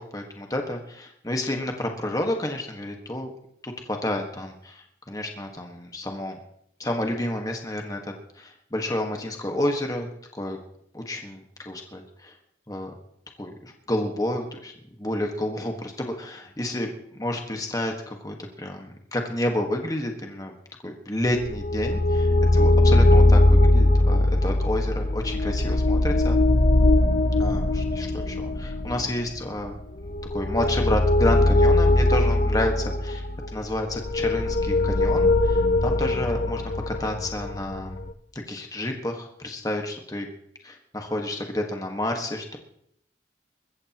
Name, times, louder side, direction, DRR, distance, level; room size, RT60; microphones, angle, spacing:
voice 1, 0.0-3.3 3.6-6.4 6.8-10.1 10.3-10.6 10.9-12.3 12.7-12.9 13.4-14.7 15.0-20.5 20.8-26.4 27.4-29.7 30.3-33.2 33.5-38.0 38.5-40.3 40.6-42.6, left 1 dB, 20° left, 3 dB, 1.5 m, -30 dB
sound 1, 21.4-38.1, left 2 dB, 50° left, 0.8 m, -21 dB
22.0 x 14.5 x 3.0 m, 0.70 s
head